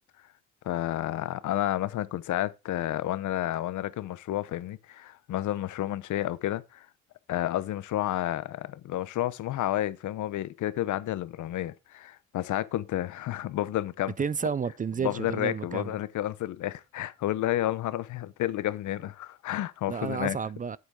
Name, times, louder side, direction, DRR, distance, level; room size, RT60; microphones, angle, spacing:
voice 1, 0.6-6.9 7.3-14.1 15.0-20.4, left 13 dB, 75° left, 0.9 m, -31 dB
voice 2, 14.2-15.9 19.9-20.8, right 6 dB, 30° right, 0.4 m, -31 dB
8.2 x 8.1 x 3.7 m
cardioid pair, 90°, 30 cm